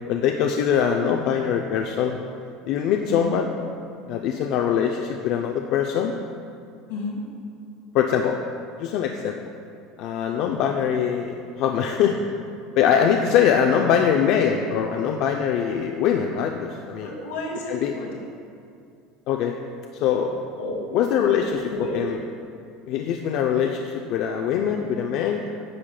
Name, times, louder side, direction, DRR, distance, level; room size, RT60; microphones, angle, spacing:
voice 1, 0.1-2.2 2.7-3.5 4.1-6.1 7.9-8.4 8.8-9.3 10.0-12.2 12.8-17.1 17.7-17.9 19.3-19.6 20.0-20.3 20.9-21.6 21.9-22.2 22.9-25.5, left 8 dB, 60° left, 3 dB, 0.3 m, -22 dB
voice 2, 3.1-3.4 6.9-7.2 17.0-18.1 20.6-20.8 21.5-21.9, left 1 dB, 90° left, -2 dB, 1.5 m, -32 dB
9.9 x 5.7 x 2.2 m, 2.4 s
supercardioid pair, 120°, 0 cm